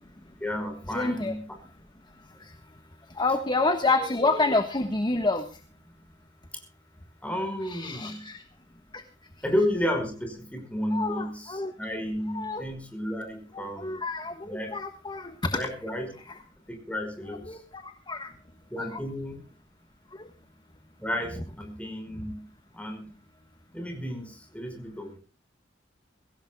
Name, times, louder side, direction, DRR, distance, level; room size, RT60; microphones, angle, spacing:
voice 1, 0.4-1.6 7.2-8.3 9.4-14.0 14.4-14.8 15.5-16.1 16.7-17.6 18.7-19.4 21.0-22.5 22.7-23.1 23.7-25.2, left 1 dB, 10° left, 5 dB, 5.3 m, -32 dB
voice 2, 0.9-1.3 3.2-5.4 7.6-8.4 10.9-11.7 12.3-12.6 13.8-15.3 17.3-17.6 18.1-18.3 18.9-19.0, left 3 dB, 25° left, 7 dB, 1.3 m, -27 dB
24.0 x 16.5 x 2.3 m, 0.36 s
head